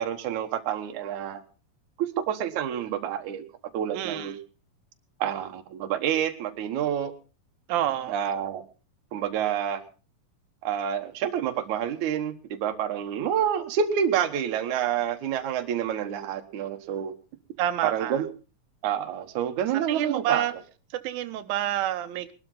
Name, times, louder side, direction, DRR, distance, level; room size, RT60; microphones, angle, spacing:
voice 1, 0.0-1.4 2.0-3.4 3.7-4.3 5.2-7.1 8.1-8.6 9.1-9.8 10.6-12.3 12.6-17.1 17.8-18.3 18.8-20.4, right 9 dB, 65° right, 6 dB, 2.5 m, -28 dB
voice 2, 3.9-4.4 7.7-8.1 17.6-18.2 19.7-20.5 20.9-22.3, right 11 dB, 85° right, 9 dB, 2.6 m, -28 dB
21.5 x 12.5 x 3.9 m, 0.34 s
omnidirectional pair, 4.0 m